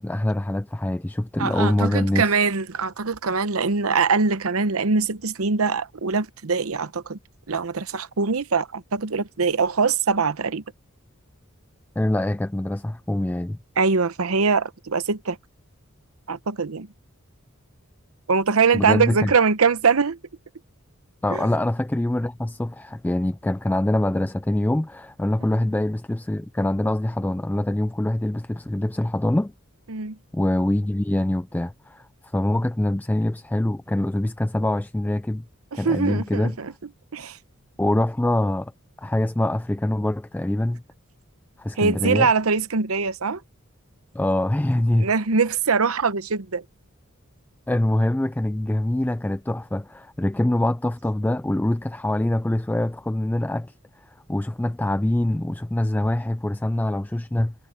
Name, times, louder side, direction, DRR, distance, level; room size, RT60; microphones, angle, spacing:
voice 1, 0.0-2.3 12.0-13.6 18.7-19.3 21.2-29.5 30.3-35.4 35.7-36.5 37.8-38.7 39.0-40.8 41.6-42.3 44.1-45.1 47.7-57.5, left 1 dB, 10° left, 0.3 m, -24 dB
voice 2, 1.4-7.2 7.5-10.6 13.8-15.4 16.3-16.9 18.3-20.2 21.3-21.5 25.4-25.5 29.9-30.2 35.7-36.7 37.1-37.4 41.8-43.4 45.0-46.6, right 5 dB, 85° right, 0.9 m, -22 dB
head